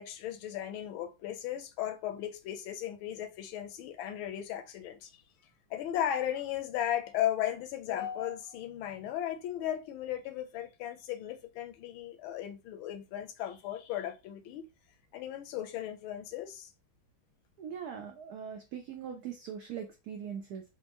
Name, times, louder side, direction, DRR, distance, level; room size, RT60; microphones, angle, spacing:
voice 1, 0.0-5.1 5.7-14.7 15.1-16.7, left 11 dB, 80° left, 1.4 m, -36 dB
voice 2, 17.6-20.6, right 8 dB, 85° right, 0.8 m, -41 dB
4.2 x 2.1 x 2.9 m
omnidirectional pair, 2.3 m